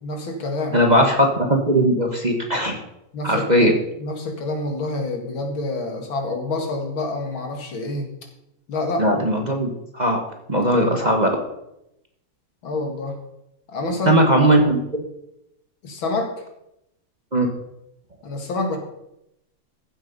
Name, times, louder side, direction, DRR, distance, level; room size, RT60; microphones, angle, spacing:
voice 1, 0.0-0.9 3.1-3.7 4.0-8.1 8.7-9.1 10.6-10.9 12.6-13.2 13.7-14.2 15.8-16.5 18.2-18.8, left 2 dB, 80° left, 3 dB, 2.8 m, -27 dB
voice 2, 0.7-2.8 3.2-3.7 9.0-9.7 9.9-10.2 10.5-11.3 14.0-15.0 17.3-17.5, right 1 dB, 25° right, 2 dB, 1.3 m, -18 dB
15.0 x 7.4 x 5.5 m, 0.84 s
omnidirectional pair, 2.1 m